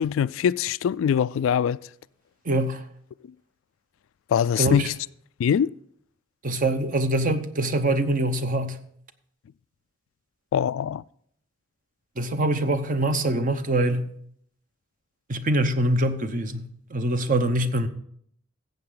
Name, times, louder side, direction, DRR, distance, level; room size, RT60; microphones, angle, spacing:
voice 1, 0.0-1.8 4.3-4.9 5.4-5.7 10.5-11.0, left 8 dB, 80° left, 0.3 m, -23 dB
voice 2, 2.4-2.8 4.6-4.9 6.4-8.8 12.2-14.1 15.3-17.9, right 1 dB, 45° right, 0.8 m, -24 dB
14.5 x 8.0 x 3.8 m
head